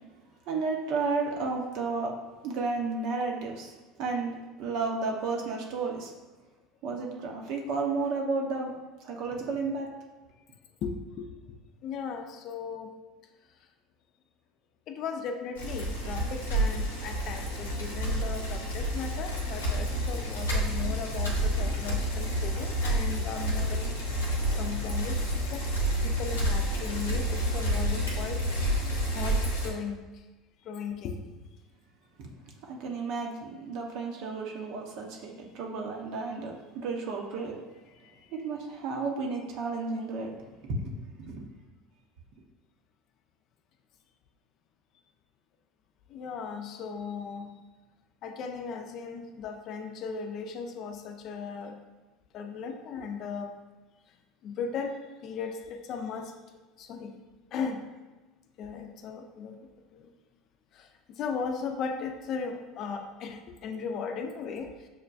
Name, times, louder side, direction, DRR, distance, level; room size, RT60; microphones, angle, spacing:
voice 1, 0.5-2.1 2.4-3.7 4.0-6.1 6.8-8.7 9.0-9.9 32.2-32.3 32.6-37.6 38.3-40.4 40.6-40.9 41.2-41.4, right 4 dB, 60° right, 1 dB, 0.7 m, -32 dB
voice 2, 10.8-11.3 11.8-12.9 14.9-23.9 24.5-25.2 25.5-28.6 29.1-30.0 30.6-31.3 38.0-38.1 46.1-47.5 48.2-51.8 52.3-53.5 54.4-55.0 55.2-56.3 56.8-57.1 57.5-57.9 58.6-59.6 59.9-60.1 60.7-60.9 61.2-64.7, left 5 dB, 55° left, 4 dB, 0.4 m, -37 dB
Bicycle, 15.6-29.7, equal, 90° left, 0.7 m, -29 dB
6.3 x 2.2 x 2.5 m, 1.2 s
hypercardioid pair, 80°, 0 cm